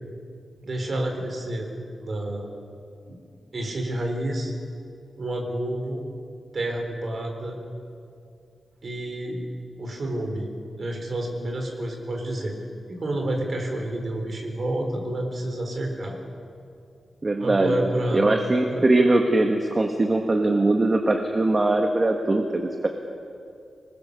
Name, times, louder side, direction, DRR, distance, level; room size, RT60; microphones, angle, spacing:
voice 1, 0.6-1.7 2.0-2.5 3.1-3.2 3.5-4.5 5.2-6.0 6.5-7.6 8.8-9.4 9.8-10.5 10.8-12.5 12.9-16.2 17.4-18.2 18.7-18.8, right 1 dB, 40° right, 2 dB, 4.1 m, -29 dB
voice 2, 17.2-22.9, right 2 dB, 25° right, 3 dB, 1.4 m, -21 dB
25.5 x 21.0 x 6.9 m, 2.5 s
wide cardioid pair, 165°, 0 cm